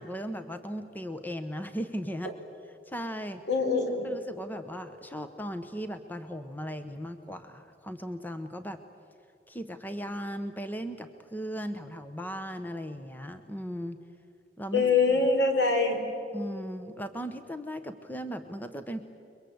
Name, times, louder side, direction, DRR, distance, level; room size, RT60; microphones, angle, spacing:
voice 1, 0.0-2.3 2.9-3.4 4.0-8.8 9.5-14.0 14.6-14.8 16.3-19.0, equal, 10° left, 9 dB, 1.0 m, -37 dB
voice 2, 3.5-4.0 14.7-16.0, left 3 dB, 70° left, 4 dB, 4.7 m, -24 dB
30.0 x 22.5 x 8.0 m, 2.5 s
head